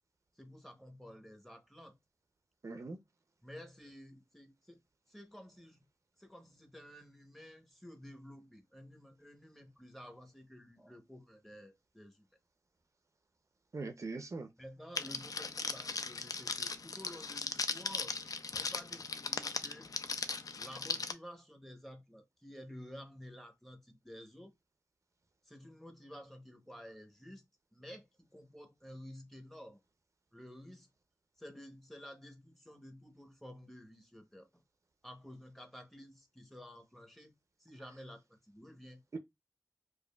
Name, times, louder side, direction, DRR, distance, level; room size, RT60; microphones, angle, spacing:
voice 1, 0.4-2.0 3.4-4.8 5.1-5.8 6.2-12.3 14.6-18.2 18.5-19.9 20.6-24.5 25.4-27.4 27.7-29.8 30.3-30.9 31.4-34.6 35.0-37.3 37.6-39.0, equal, 5° left, 0.8 m, -52 dB
voice 2, 2.6-3.0 13.7-14.5 39.1-39.2, right 3 dB, 50° right, 0.4 m, -41 dB
Crackle, 15.0-21.1, left 4 dB, 65° left, 0.4 m, -38 dB
4.8 x 2.4 x 2.2 m
wide cardioid pair, 90°, 7 cm